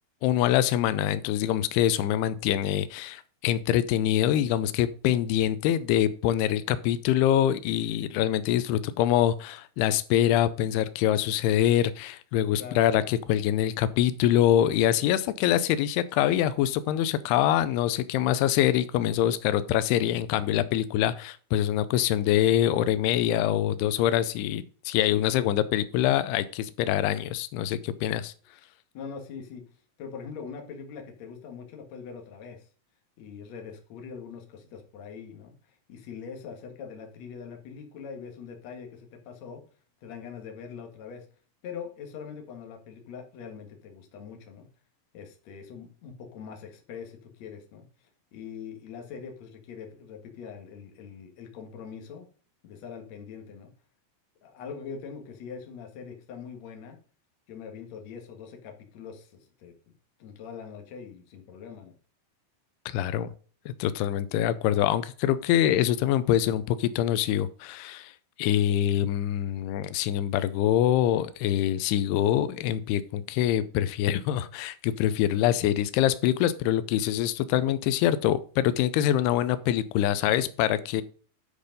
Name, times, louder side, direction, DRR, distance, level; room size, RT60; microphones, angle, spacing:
voice 1, 0.2-28.3 62.9-63.3 63.7-68.1 68.4-81.0, left 11 dB, 90° left, 14 dB, 2.6 m, -25 dB
voice 2, 28.9-29.6 30.0-32.7 33.2-39.6 40.0-41.3 41.6-44.7 45.1-52.3 52.6-53.7 54.4-57.0 57.5-59.7 60.2-61.9, left 6 dB, 55° left, 3 dB, 2.4 m, -42 dB
10.5 x 5.1 x 5.2 m, 0.41 s
omnidirectional pair, 4.6 m